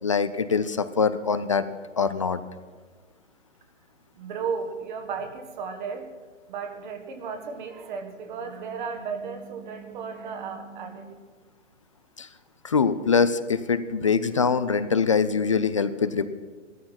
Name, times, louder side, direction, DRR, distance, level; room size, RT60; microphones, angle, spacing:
voice 1, 0.0-1.6 2.0-2.4 12.2-12.3 12.6-16.3, left 5 dB, 30° left, 13 dB, 0.4 m, -23 dB
voice 2, 4.1-6.1 6.5-11.1, right 5 dB, 40° right, 5 dB, 1.7 m, -34 dB
16.0 x 13.0 x 5.8 m, 1.5 s
figure-of-eight pair, 135°, 37 cm